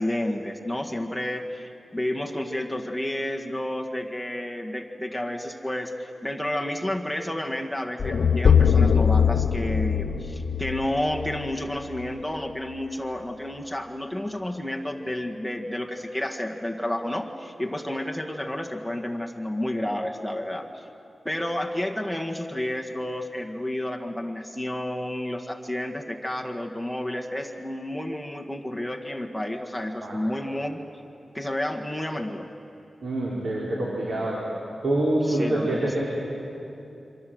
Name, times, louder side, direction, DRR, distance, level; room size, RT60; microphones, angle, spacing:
voice 1, 0.0-20.8 21.3-30.8 31.3-32.5 35.2-36.0, left 1 dB, ahead, 1 dB, 1.7 m, -31 dB
sound 1, 8.0-12.1, left 7 dB, 85° left, 0.8 m, -22 dB
voice 2, 33.0-34.4 34.8-36.0, right 1 dB, 80° right, -5 dB, 4.7 m, -25 dB
26.5 x 25.5 x 7.9 m, 2.9 s
wide cardioid pair, 100°, 0 cm